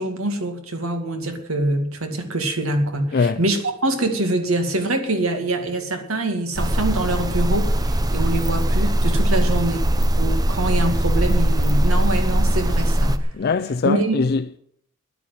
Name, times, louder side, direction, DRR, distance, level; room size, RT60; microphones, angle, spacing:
voice 1, 0.0-9.9 10.2-13.3 13.8-14.2, right 2 dB, 75° right, 2.2 m, -24 dB
sound 1, 6.6-13.2, right 1 dB, 20° right, 0.7 m, -20 dB
voice 2, 13.4-14.6, left 4 dB, 50° left, 0.5 m, -22 dB
10.5 x 9.8 x 9.1 m
head